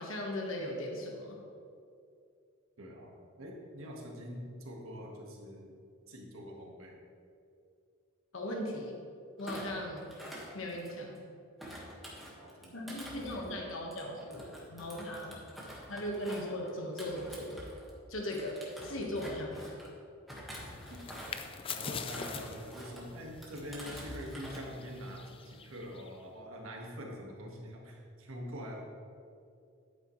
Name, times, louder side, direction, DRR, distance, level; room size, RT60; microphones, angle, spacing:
voice 1, 0.0-1.4 8.3-9.0 9.4-10.1 10.5-11.2 12.7-15.4 15.9-17.6 18.1-19.6, left 1 dB, 70° left, 0 dB, 1.5 m, -38 dB
voice 2, 2.8-5.7 6.1-7.0 12.4-12.9 20.9-21.0 21.7-28.8, equal, 75° right, -1 dB, 1.7 m, -45 dB
Thump thud, 9.4-11.2 11.6-18.0 18.3-19.9 20.3-21.5 22.0-23.0 23.4-24.6 24.9-25.3, equal, ahead, 1.7 m, -47 dB
sound 1, 20.5-26.2, left 6 dB, 25° left, 0.4 m, -44 dB
11.0 x 9.0 x 3.2 m, 2.5 s
head